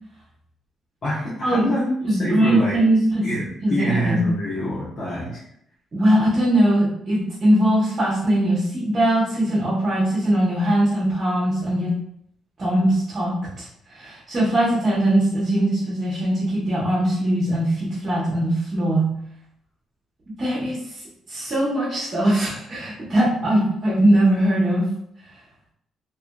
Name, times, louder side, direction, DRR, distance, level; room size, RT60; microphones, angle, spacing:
voice 1, 1.0-2.8 3.2-5.4, equal, 50° left, -10 dB, 1.0 m, -26 dB
voice 2, 2.0-4.2 5.9-12.0 12.6-19.1 20.4-21.0 21.3-24.9, right 1 dB, 40° right, -7 dB, 0.8 m, -21 dB
2.9 x 2.4 x 2.3 m, 0.72 s
cardioid pair, 90°, 0 cm